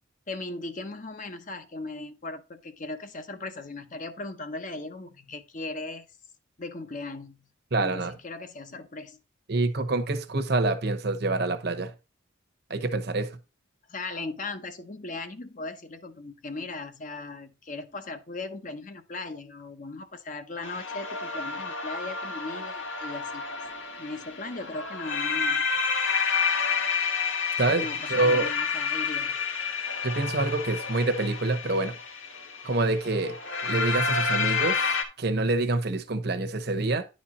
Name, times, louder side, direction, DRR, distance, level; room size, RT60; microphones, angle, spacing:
voice 1, 0.3-6.1 6.6-7.5 7.8-9.2 13.9-23.6 24.0-25.7 27.8-29.4, left 2 dB, 40° left, 0.8 m, -38 dB
voice 2, 7.7-8.1 9.5-11.9 12.7-13.4 27.6-28.5 30.0-32.0 32.6-33.4 33.6-34.8 35.2-37.1, right 2 dB, 55° right, 1.0 m, -26 dB
sound 1, 20.6-35.0, left 5 dB, 75° left, 1.5 m, -29 dB
10.5 x 4.3 x 4.3 m
head